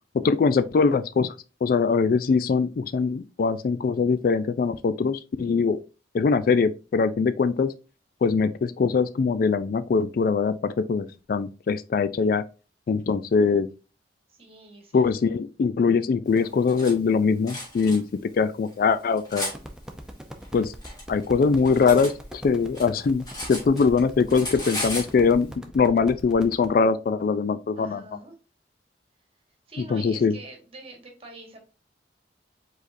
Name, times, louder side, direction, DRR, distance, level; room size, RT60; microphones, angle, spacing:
voice 1, 0.1-1.3 1.6-5.8 6.1-7.7 8.2-12.4 12.9-13.7 14.9-18.0 18.3-19.5 20.5-20.7 21.1-28.0 29.9-30.3, left 5 dB, 55° left, 0.3 m, -22 dB
voice 2, 14.3-15.1 27.8-28.3 29.7-31.6, right 2 dB, 35° right, 1.6 m, -45 dB
Cutlery silverware, 16.4-16.9 17.5-18.0 18.7-19.6 20.4-22.1 22.5-24.0 24.3-25.1, left 1 dB, 25° left, 2.3 m, -34 dB
sound 1, 19.5-26.7, equal, 5° right, 0.6 m, -42 dB
5.0 x 4.0 x 2.5 m
head